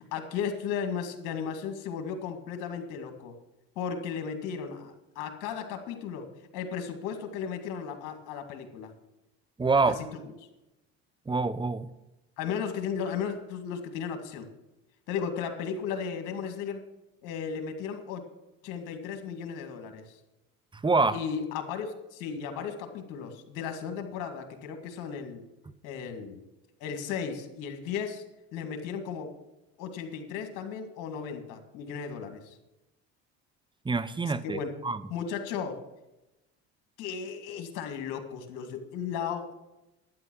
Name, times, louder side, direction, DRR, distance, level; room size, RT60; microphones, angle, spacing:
voice 1, 0.1-3.4 3.8-8.9 9.9-10.1 10.4-10.5 12.4-14.5 15.1-16.9 17.2-18.2 18.6-20.2 21.1-25.4 25.8-26.4 26.8-28.2 28.5-29.3 29.8-32.6 34.2-34.8 35.1-35.8 37.0-39.5, left 7 dB, 75° left, 6 dB, 1.9 m, -35 dB
voice 2, 9.6-9.9 11.3-11.9 20.8-21.2 33.8-35.0, right 3 dB, 15° right, 14 dB, 0.7 m, -26 dB
11.5 x 9.2 x 6.2 m, 0.98 s
supercardioid pair, 80°, 32 cm